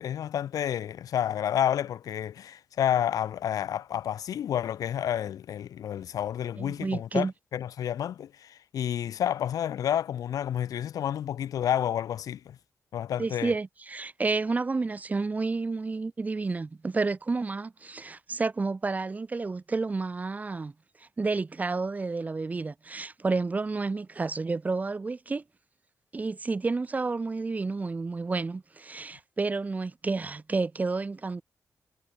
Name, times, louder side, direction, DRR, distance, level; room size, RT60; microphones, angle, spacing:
voice 1, 0.0-7.3 7.5-12.6 12.9-13.5, left 10 dB, 80° left, 0.3 m, -30 dB
voice 2, 6.6-7.3 13.2-20.7 21.2-25.4 26.1-31.4, right 3 dB, 25° right, 0.5 m, -30 dB
wide cardioid pair, 120°, 6 cm